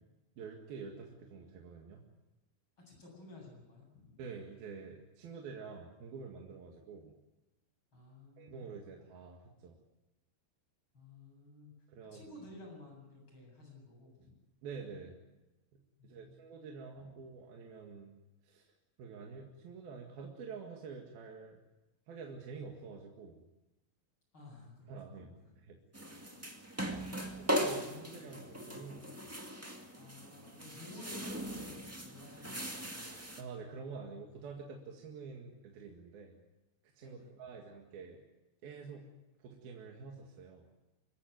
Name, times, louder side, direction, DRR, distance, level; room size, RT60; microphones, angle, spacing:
voice 1, 0.4-2.0 4.2-7.2 8.4-9.8 11.9-12.3 14.6-15.2 15.7-18.1 18.4-18.7 19.0-21.6 22.1-23.4 24.9-25.3 25.7-25.8 26.2-26.3 27.4-29.3 33.4-36.4 36.9-38.2 38.6-39.1 39.4-40.7, right 5 dB, 75° right, 0 dB, 3.8 m, -48 dB
voice 2, 2.8-4.2 7.9-8.7 10.9-11.7 12.1-14.1 16.0-16.4 24.3-24.9 26.2-26.4 27.7-28.4 29.9-33.1 37.0-37.3, left 2 dB, 30° left, 1 dB, 8.5 m, -54 dB
sound 1, 25.9-33.4, equal, 20° right, 0.3 m, -39 dB
25.5 x 15.0 x 9.4 m, 1.0 s
omnidirectional pair, 4.3 m